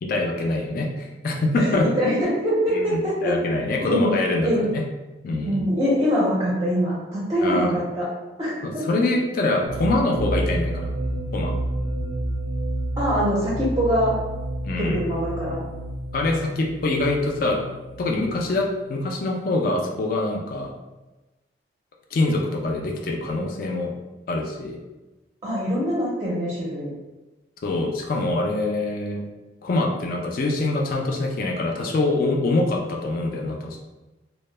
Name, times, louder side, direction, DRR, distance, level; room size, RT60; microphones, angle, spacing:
voice 1, 0.0-1.9 2.7-4.8 5.2-5.6 7.4-7.8 8.6-10.9 11.3-11.5 14.6-15.0 16.1-17.6 18.0-20.7 22.1-23.9 24.3-24.8 27.6-29.2 29.6-33.8, left 2 dB, 50° left, 1 dB, 0.3 m, -24 dB
voice 2, 1.6-3.3 3.9-4.1 4.4-4.7 5.4-8.1 8.4-9.0 13.0-14.2 14.8-15.6 25.4-26.9, equal, 20° right, -6 dB, 0.5 m, -23 dB
sound 1, 9.7-19.3, right 1 dB, 80° right, 0.4 m, -30 dB
2.1 x 2.0 x 3.1 m, 1.1 s
head